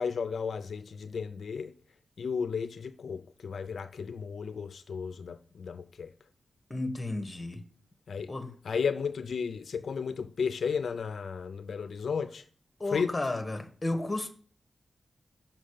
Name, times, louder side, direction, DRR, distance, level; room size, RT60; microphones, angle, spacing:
voice 1, 0.0-1.7 2.2-6.1 8.1-8.3 8.6-12.4 12.9-13.1, left 6 dB, 65° left, 0.4 m, -33 dB
voice 2, 6.7-7.6 8.3-8.5 12.8-14.3, left 2 dB, 15° left, 1.3 m, -33 dB
6.4 x 6.0 x 6.6 m
wide cardioid pair, 160°, 0 cm